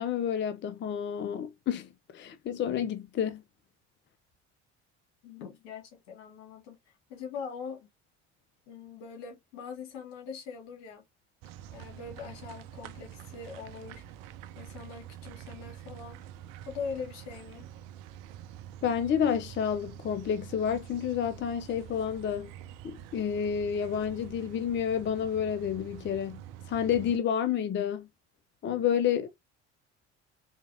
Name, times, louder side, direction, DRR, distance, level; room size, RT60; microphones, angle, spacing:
voice 1, 0.0-3.4 18.8-22.5 22.8-26.4 26.7-28.1 28.6-29.3, left 8 dB, 35° left, 0.5 m, -30 dB
voice 2, 5.2-7.9 8.7-11.0 11.7-14.0 14.6-16.2 16.7-17.7, left 5 dB, 75° left, 1.6 m, -42 dB
sound 1, 11.4-27.2, right 11 dB, 70° right, 0.6 m, -47 dB
4.0 x 2.9 x 2.6 m
hypercardioid pair, 65°, 35 cm